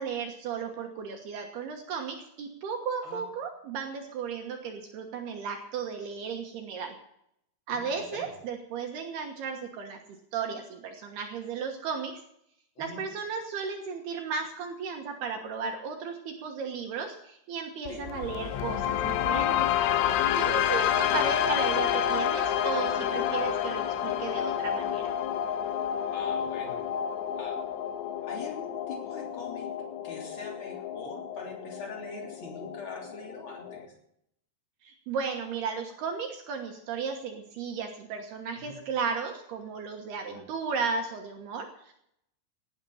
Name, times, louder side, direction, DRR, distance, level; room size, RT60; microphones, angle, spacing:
voice 1, 0.0-7.0 7.7-10.0 10.3-12.1 12.8-19.7 20.4-25.1 34.8-41.9, right 5 dB, 65° right, 3 dB, 3.0 m, -35 dB
sound 1, 17.9-33.9, left 10 dB, 90° left, 3.5 m, -29 dB
voice 2, 26.0-26.9 27.3-27.6 28.2-29.7 30.0-33.9 38.5-38.8 40.3-40.4, left 2 dB, 30° left, 1 dB, 3.3 m, -43 dB
18.0 x 9.8 x 5.7 m, 0.74 s
omnidirectional pair, 5.6 m